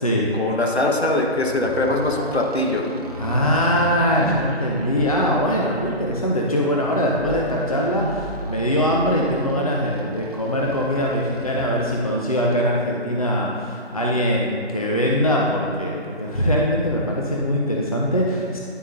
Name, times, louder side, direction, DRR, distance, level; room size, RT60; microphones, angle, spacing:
voice 1, 0.3-2.9, left 2 dB, 70° left, 0 dB, 1.4 m, -22 dB
sound 1, 1.1-11.9, right 1 dB, 35° right, 0.8 m, -34 dB
voice 2, 3.2-18.6, equal, 35° left, -2 dB, 0.5 m, -22 dB
10.0 x 7.3 x 2.7 m, 2.4 s
figure-of-eight pair, 160°, 33 cm